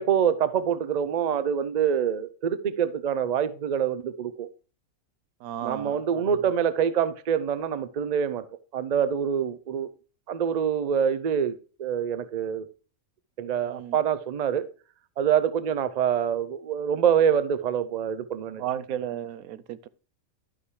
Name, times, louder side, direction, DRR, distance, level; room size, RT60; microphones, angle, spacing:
voice 1, 0.0-4.5 5.6-8.4 8.7-9.9 10.3-12.7 13.4-14.7 15.2-18.6, right 8 dB, 60° right, 0.4 m, -25 dB
voice 2, 5.4-6.4 13.6-14.0 18.6-19.9, right 10 dB, 80° right, 1.1 m, -34 dB
12.0 x 5.6 x 3.2 m
omnidirectional pair, 1.5 m